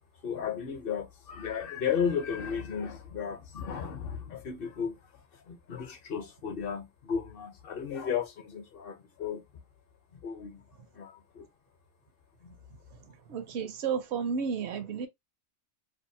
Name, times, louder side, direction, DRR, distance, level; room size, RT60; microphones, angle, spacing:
voice 1, 0.2-5.0 5.5-9.5 10.2-10.7 10.9-11.5 12.4-12.5, left 7 dB, 55° left, 0.8 m, -34 dB
voice 2, 13.3-15.1, right 6 dB, 70° right, 0.9 m, -32 dB
2.8 x 2.3 x 2.6 m
omnidirectional pair, 1.2 m